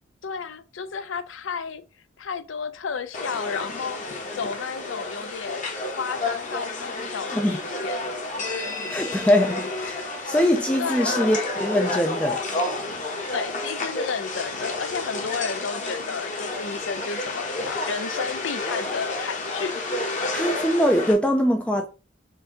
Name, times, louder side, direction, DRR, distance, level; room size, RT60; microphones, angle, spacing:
voice 1, 0.2-1.8 2.2-4.0 4.3-8.0 10.8-11.3 13.3-20.2, left 5 dB, 75° left, 0.5 m, -32 dB
sound 1, 3.1-21.1, left 2 dB, 40° left, 1.0 m, -30 dB
voice 2, 8.9-12.4 20.3-21.9, equal, 5° left, 0.3 m, -22 dB
4.5 x 2.6 x 3.8 m
head